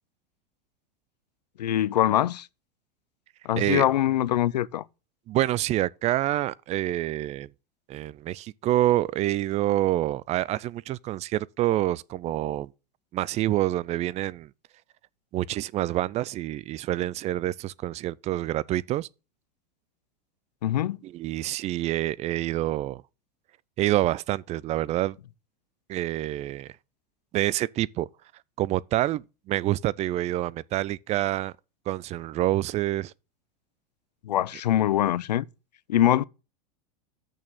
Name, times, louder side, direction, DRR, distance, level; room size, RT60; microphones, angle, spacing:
voice 1, 1.6-2.5 3.4-4.8 20.6-21.0 34.2-35.4 35.9-36.2, left 12 dB, 85° left, 0.5 m, -23 dB
voice 2, 3.6-3.9 5.3-7.5 7.9-12.7 13.1-14.5 15.3-19.1 21.0-23.0 23.8-25.2 25.9-26.7 27.3-28.1 28.6-31.5 31.9-33.1, right 14 dB, 35° right, 0.4 m, -27 dB
6.5 x 6.3 x 7.1 m
hypercardioid pair, 100°, 21 cm